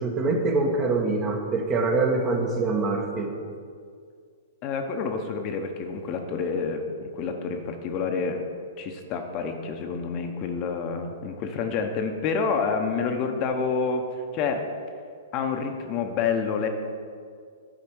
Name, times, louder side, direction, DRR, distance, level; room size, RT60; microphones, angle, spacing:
voice 1, 0.0-3.3, right 3 dB, 30° right, 3 dB, 1.1 m, -24 dB
voice 2, 4.6-8.4 8.8-14.1 14.3-14.6 15.3-16.7, left 5 dB, 40° left, 4 dB, 0.9 m, -28 dB
8.9 x 4.4 x 6.2 m, 2.1 s
hypercardioid pair, 115°, 0 cm